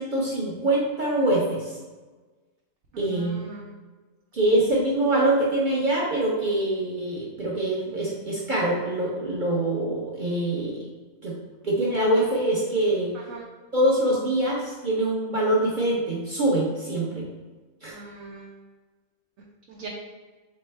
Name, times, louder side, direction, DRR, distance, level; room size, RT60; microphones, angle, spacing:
voice 1, 0.0-1.8 3.0-3.4 4.3-10.9 11.2-11.4 11.6-13.1 13.7-17.3 17.8-18.0, right 1 dB, 45° right, -5 dB, 0.8 m, -24 dB
voice 2, 2.9-3.7 13.1-13.5 17.9-18.5 19.7-19.9, right 3 dB, 75° right, -2 dB, 1.0 m, -41 dB
4.2 x 3.2 x 3.2 m, 1.3 s
omnidirectional pair, 1.5 m